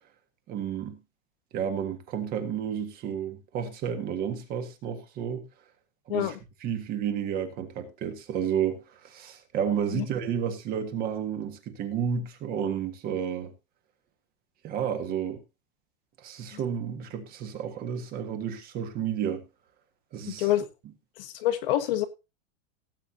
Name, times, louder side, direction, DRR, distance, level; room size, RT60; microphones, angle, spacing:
voice 1, 0.5-1.0 1.5-5.4 6.1-6.4 6.6-13.5 14.6-15.4 16.2-19.5 20.1-20.5, right 8 dB, 25° right, 1.7 m, -31 dB
voice 2, 20.4-20.7 21.2-22.0, left 13 dB, 45° left, 1.5 m, -26 dB
18.0 x 8.4 x 2.7 m
supercardioid pair, 170°, 38 cm